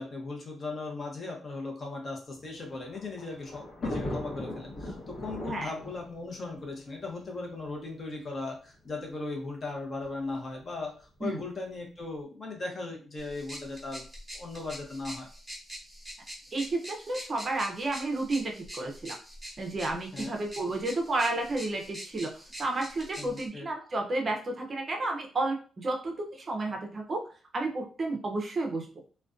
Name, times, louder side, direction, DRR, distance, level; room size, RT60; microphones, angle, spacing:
voice 1, 0.0-14.1 14.3-15.3 20.1-20.4 23.2-23.7, left 3 dB, 35° left, 1 dB, 0.6 m, -38 dB
Thunder, 2.4-7.7 8.5-8.6 8.8-8.9 10.0-10.3, left 1 dB, 55° left, 0.9 m, -39 dB
sound 1, 13.2-23.5, equal, ahead, 0.9 m, -45 dB
voice 2, 16.5-19.2 19.6-22.3 22.6-27.2 27.5-28.9, right 2 dB, 30° right, 2 dB, 0.5 m, -31 dB
2.4 x 2.1 x 2.4 m, 0.38 s
cardioid pair, 140°, 0 cm